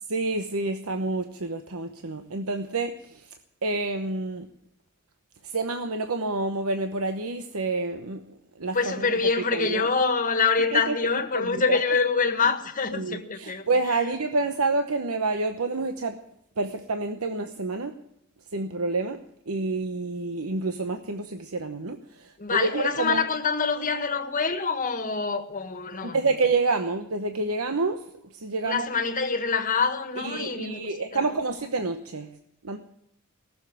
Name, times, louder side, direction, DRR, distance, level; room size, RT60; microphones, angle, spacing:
voice 1, 0.1-3.3 3.6-4.5 5.4-9.1 9.5-9.9 10.7-11.0 11.3-11.8 12.9-16.2 16.6-17.9 18.5-19.2 19.5-23.2 26.0-28.0 28.3-28.9 30.2-32.3 32.6-32.8, right 3 dB, 85° right, 1.0 m, -28 dB
voice 2, 8.7-13.6 22.4-26.2 28.6-31.2, left 4 dB, 40° left, 1.6 m, -25 dB
18.5 x 7.3 x 9.7 m
head